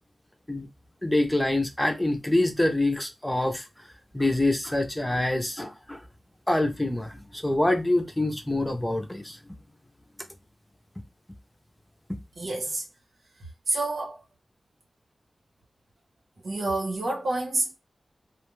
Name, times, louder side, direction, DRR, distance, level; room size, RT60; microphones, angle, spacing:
voice 1, 1.0-3.7 4.1-6.0 6.5-9.4, left 1 dB, 10° left, 0.5 m, -25 dB
voice 2, 12.4-12.9 13.7-14.2 16.4-17.8, right 2 dB, 85° right, 1.0 m, -28 dB
2.4 x 2.2 x 3.1 m
wide cardioid pair, 105°, 0 cm